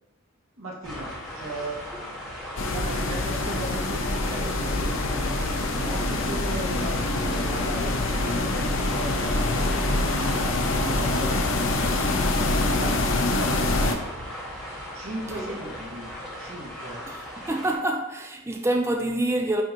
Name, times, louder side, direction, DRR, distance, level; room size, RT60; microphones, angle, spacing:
voice 1, 0.6-1.8 2.7-5.1 5.8-11.3 12.4-13.9 14.9-16.1 16.4-17.0, right 1 dB, 85° right, 1.8 m, -37 dB
sound 1, 0.8-17.7, equal, 5° left, 1.9 m, -38 dB
sound 2, 2.6-14.0, left 2 dB, 70° left, 0.7 m, -25 dB
voice 2, 17.1-19.6, right 1 dB, 15° right, 0.4 m, -27 dB
9.8 x 3.8 x 3.0 m
head